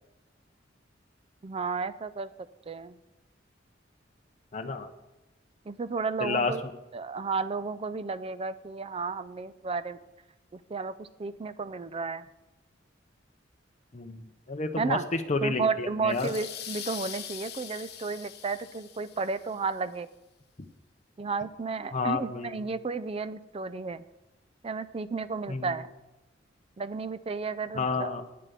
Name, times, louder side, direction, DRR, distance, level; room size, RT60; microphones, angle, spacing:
voice 1, 1.4-2.3 2.7-3.0 5.7-6.6 6.9-10.0 10.5-12.3 14.8-15.1 15.4-20.1 21.2-24.1 24.6-25.9 26.8-28.1, right 4 dB, 30° right, 14 dB, 0.4 m, -32 dB
voice 2, 4.5-4.9 6.2-6.5 13.9-16.3 21.9-22.6 25.5-25.8 27.7-28.2, left 3 dB, 40° left, 5 dB, 0.7 m, -30 dB
sound 1, 16.1-19.5, left 9 dB, 60° left, 1.0 m, -42 dB
9.4 x 7.3 x 6.9 m, 0.98 s
head